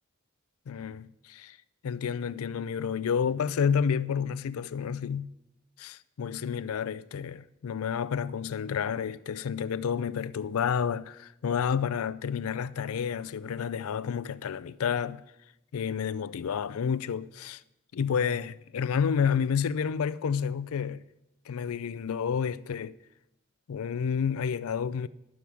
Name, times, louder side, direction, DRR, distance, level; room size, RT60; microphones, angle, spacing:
voice 1, 0.7-1.6 1.8-5.3 5.8-15.2 15.7-17.6 17.9-21.0 21.5-23.0 23.7-25.1, left 7 dB, 75° left, 0.4 m, -30 dB
11.5 x 6.1 x 6.9 m
head